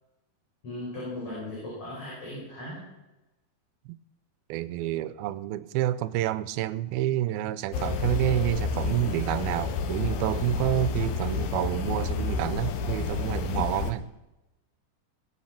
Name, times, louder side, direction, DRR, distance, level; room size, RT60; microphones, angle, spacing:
voice 1, 0.6-2.8, left 1 dB, 35° left, 7.2 m, -37 dB
voice 2, 4.5-14.1, right 14 dB, 85° right, 2.5 m, -28 dB
sound 1, 7.7-13.9, left 5 dB, 75° left, 2.8 m, -30 dB
21.5 x 8.2 x 5.9 m
omnidirectional pair, 4.3 m